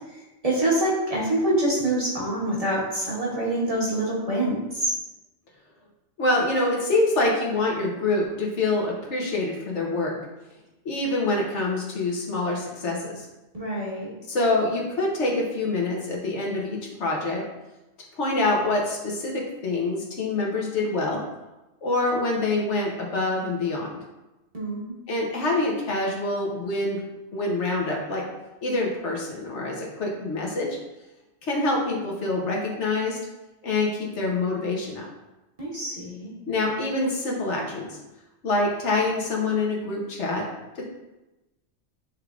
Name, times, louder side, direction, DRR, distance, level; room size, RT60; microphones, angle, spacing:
voice 1, 0.4-5.0 13.5-14.1 24.5-24.9 35.6-36.3, right 1 dB, 35° right, -5 dB, 1.0 m, -25 dB
voice 2, 6.2-10.1 10.8-13.3 14.3-17.4 18.2-21.2 21.8-23.9 25.1-27.0 27.3-28.2 28.6-30.8 31.4-33.2 33.6-35.1 36.5-38.0 38.4-40.4 40.7-40.8, left 2 dB, 75° left, -1 dB, 1.2 m, -26 dB
6.2 x 3.3 x 2.4 m, 1.0 s
omnidirectional pair, 1.2 m